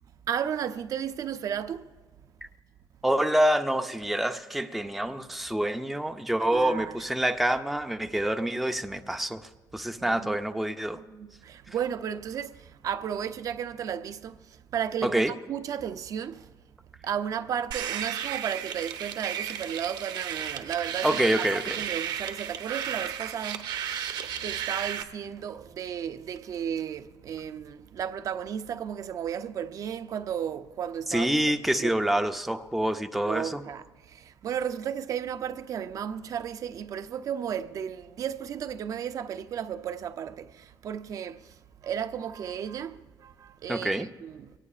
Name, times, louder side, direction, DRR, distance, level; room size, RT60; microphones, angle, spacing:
voice 1, 0.3-1.9 6.4-7.0 10.0-10.4 10.9-16.5 17.0-23.7 24.0-31.3 31.7-32.0 33.2-44.5, right 8 dB, 50° right, 0.5 m, -34 dB
voice 2, 3.0-11.0 11.7-11.8 15.0-15.3 21.0-21.8 31.1-33.6 43.7-44.1, right 1 dB, ahead, 0.5 m, -27 dB
sound 1, 17.7-25.0, right 9 dB, 80° right, 1.0 m, -34 dB
23.5 x 18.0 x 2.4 m
cardioid pair, 175°, 7 cm